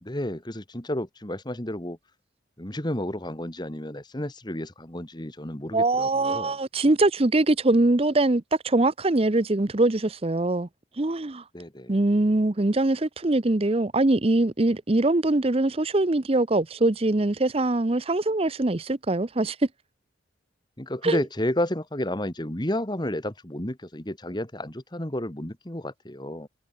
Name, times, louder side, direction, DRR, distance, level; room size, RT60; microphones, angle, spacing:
voice 1, 0.0-2.0 2.6-6.5 11.5-12.0 20.8-26.5, left 1 dB, 20° left, 2.0 m, -31 dB
voice 2, 5.7-10.7 11.0-11.4 11.9-19.6 21.0-21.2, right 2 dB, 30° right, 0.7 m, -23 dB
head